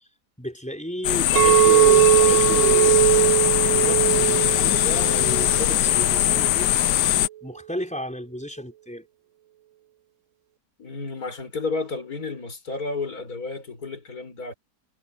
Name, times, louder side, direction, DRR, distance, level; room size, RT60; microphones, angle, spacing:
voice 1, 0.4-6.8 7.4-9.0, equal, 5° left, 5.0 m, -33 dB
sound 1, 1.0-7.3, left 13 dB, 80° left, 1.3 m, -21 dB
Chink clink, 1.4-5.7 6.0-6.5, right 13 dB, 70° right, 0.7 m, -20 dB
voice 2, 10.8-14.5, left 3 dB, 60° left, 5.4 m, -32 dB
omnidirectional pair, 1.8 m